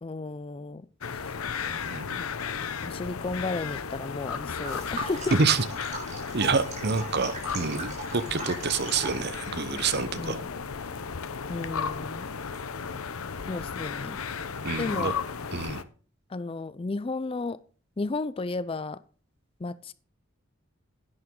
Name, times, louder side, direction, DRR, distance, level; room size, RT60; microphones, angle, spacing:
voice 1, 0.0-1.3 2.1-2.3 2.5-5.4 10.2-10.5 11.5-12.3 13.5-14.2 14.8-15.1 16.3-17.6 18.0-19.0 19.6-19.9, left 3 dB, 25° left, 0.4 m, -33 dB
sound 1, 1.0-15.8, left 6 dB, 80° left, 0.8 m, -35 dB
voice 2, 1.7-2.2 5.3-5.6 6.3-10.4 14.6-15.1 15.5-15.8, right 4 dB, 50° right, 0.8 m, -27 dB
sound 2, 4.5-9.3, right 2 dB, 35° right, 3.4 m, -39 dB
11.0 x 8.9 x 3.8 m
head